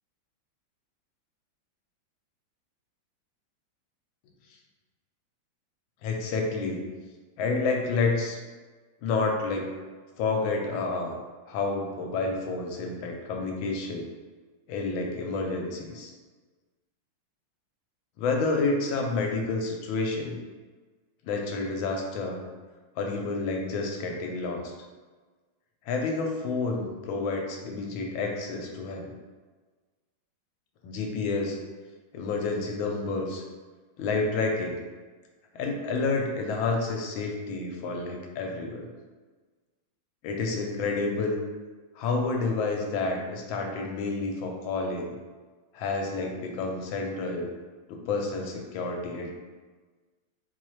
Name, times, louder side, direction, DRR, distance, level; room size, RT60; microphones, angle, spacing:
voice 1, 6.0-6.8 7.4-8.4 9.0-9.8 10.2-11.1 11.5-14.1 14.7-16.1 18.2-20.4 21.2-22.4 23.0-24.7 25.9-29.1 30.8-31.6 32.1-33.4 34.0-34.8 35.5-38.9 40.2-41.4 42.0-45.1 45.7-47.5 47.9-49.3, left 3 dB, 80° left, 2 dB, 1.4 m, -29 dB
4.3 x 2.3 x 3.1 m, 1.4 s
omnidirectional pair, 2.2 m